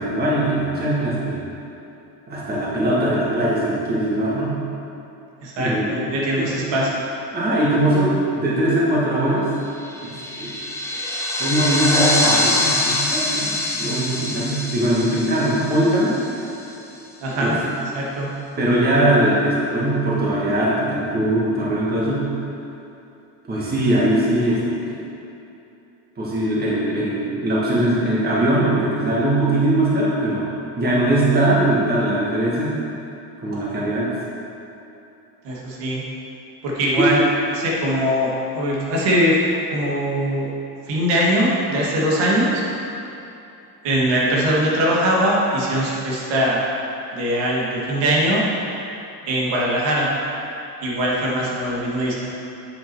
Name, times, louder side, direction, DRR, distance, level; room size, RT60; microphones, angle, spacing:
voice 1, 0.0-1.4 2.3-4.5 5.6-6.1 6.4-6.8 7.3-9.4 10.0-10.6 11.4-13.5 13.8-16.2 17.3-17.6 18.6-22.3 23.5-25.0 26.2-30.5 30.8-32.8 33.4-34.1 36.9-37.2, right 1 dB, 20° right, -7 dB, 1.7 m, -21 dB
voice 2, 5.4-6.9 17.2-18.3 35.4-36.0 36.6-37.3 37.5-39.4 39.7-40.5 40.9-42.6 43.8-46.6 47.1-48.4 49.3-50.1 50.8-52.3, equal, 85° right, -4 dB, 1.9 m, -21 dB
sound 1, 9.8-16.6, left 2 dB, 5° left, 0.6 m, -24 dB
8.5 x 5.7 x 4.6 m, 2.9 s
cardioid pair, 160°, 42 cm